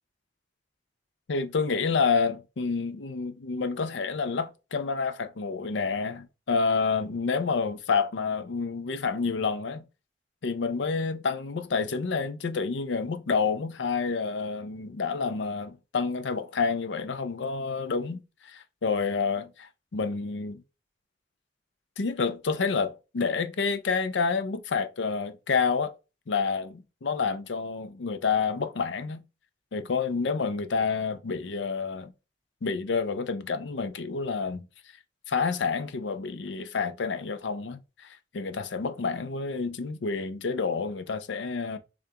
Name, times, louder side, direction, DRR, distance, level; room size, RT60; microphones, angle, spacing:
voice 1, 1.3-9.8 10.4-20.6 22.0-25.9 26.3-29.2 29.7-32.1 32.6-34.7 35.3-37.8 38.3-41.8, left 5 dB, 85° left, 0.5 m, -29 dB
6.7 x 2.5 x 2.8 m
head